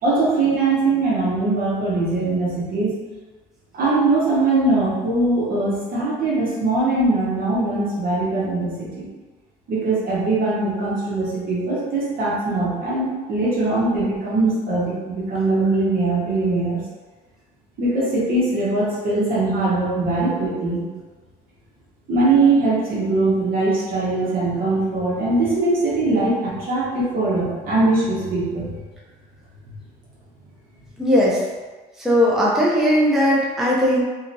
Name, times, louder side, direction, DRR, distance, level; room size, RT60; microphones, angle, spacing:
voice 1, 0.0-2.9 3.7-9.1 9.7-16.8 17.8-20.8 22.1-28.7, right 2 dB, 60° right, -6 dB, 1.0 m, -21 dB
voice 2, 31.0-31.4 32.0-34.0, equal, ahead, -6 dB, 0.5 m, -18 dB
2.7 x 2.3 x 2.6 m, 1.3 s
cardioid pair, 110°, 17 cm